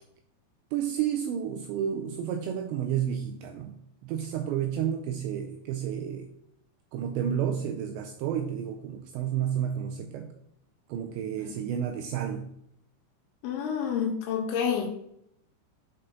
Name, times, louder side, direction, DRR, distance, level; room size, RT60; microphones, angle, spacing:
voice 1, 0.7-3.7 4.0-6.3 6.9-10.3 10.9-12.5, right 9 dB, 85° right, 5 dB, 2.5 m, -31 dB
voice 2, 13.4-14.9, left 7 dB, 80° left, 4 dB, 3.2 m, -29 dB
8.5 x 4.6 x 3.8 m, 0.74 s
omnidirectional pair, 5.6 m